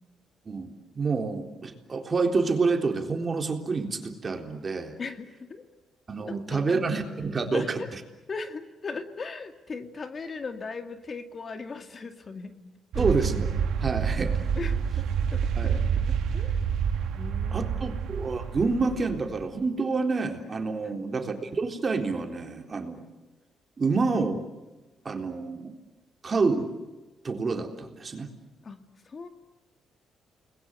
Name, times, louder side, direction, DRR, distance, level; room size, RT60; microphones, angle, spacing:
voice 1, 0.5-4.9 6.1-7.8 13.0-13.5 13.8-14.4 15.6-15.7 17.5-23.0 23.8-24.5 25.0-25.7 26.2-26.7 27.2-28.3, right 4 dB, 35° right, 5 dB, 3.8 m, -28 dB
voice 2, 5.0-5.6 6.5-6.8 7.5-7.9 8.3-12.6 12.9-13.0 14.6-16.6 17.1-18.0 20.8-21.1 28.6-29.3, left 4 dB, 40° left, 7 dB, 2.3 m, -38 dB
sound 1, 12.9-19.4, right 7 dB, 75° right, 2.5 m, -28 dB
30.0 x 21.0 x 8.1 m, 1.1 s
cardioid pair, 90°, 0 cm